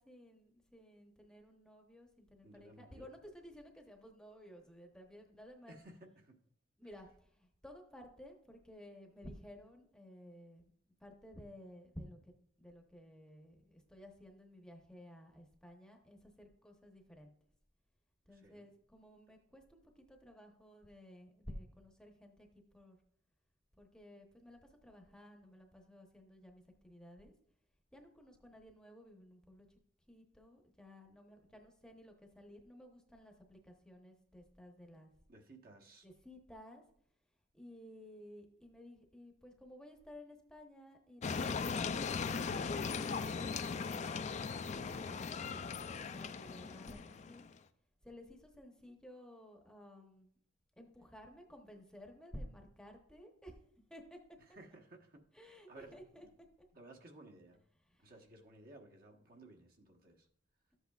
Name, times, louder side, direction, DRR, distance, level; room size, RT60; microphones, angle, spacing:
voice 1, 0.0-5.8 6.8-10.7 11.0-17.3 18.3-23.0 23.8-27.3 27.9-29.8 30.1-35.1 36.0-36.8 37.5-45.6 46.0-47.5 48.0-50.3 50.8-53.6 53.9-54.2 55.3-56.5 57.7-58.3, equal, 5° left, 2 dB, 0.9 m, -55 dB
voice 2, 2.4-3.1 5.7-6.4 18.3-18.7 34.9-36.1 54.5-56.3 56.7-57.6 58.0-60.3, right 2 dB, 50° right, 2 dB, 1.1 m, -57 dB
sound 1, 41.2-47.5, left 5 dB, 35° left, 0.4 m, -38 dB
13.0 x 8.0 x 2.4 m, 0.65 s
head